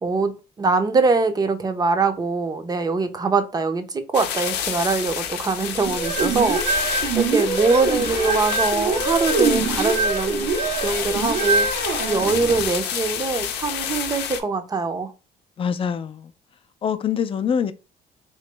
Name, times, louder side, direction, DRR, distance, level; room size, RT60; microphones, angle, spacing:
voice 1, 0.0-10.5 10.8-11.7 12.1-15.1, right 3 dB, 20° right, 0.5 m, -23 dB
sound 1, 4.1-14.4, left 9 dB, 85° left, 0.6 m, -29 dB
sound 2, 5.9-12.6, right 4 dB, 85° right, 0.9 m, -24 dB
voice 2, 15.6-16.3 16.8-17.7, left 7 dB, 30° left, 0.4 m, -24 dB
3.1 x 2.8 x 3.3 m
cardioid pair, 110°, 17 cm